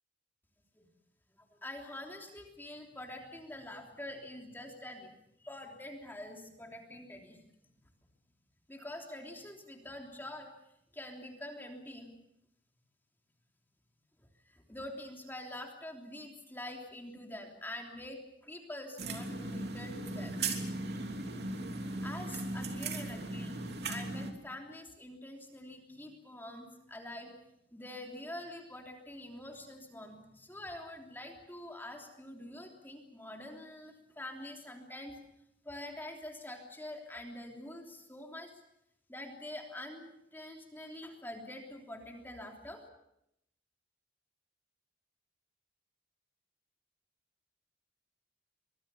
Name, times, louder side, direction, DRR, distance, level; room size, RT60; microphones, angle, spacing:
voice 1, 1.4-5.1 5.4-7.4 8.7-10.5 10.9-12.1 14.5-20.4 22.0-27.3 27.7-35.2 35.6-38.6 39.1-42.8, left 1 dB, 10° left, 2 dB, 3.3 m, -46 dB
sound 1, 19.0-24.3, right 2 dB, 60° right, 3.2 m, -37 dB
24.5 x 21.5 x 7.1 m, 0.78 s
head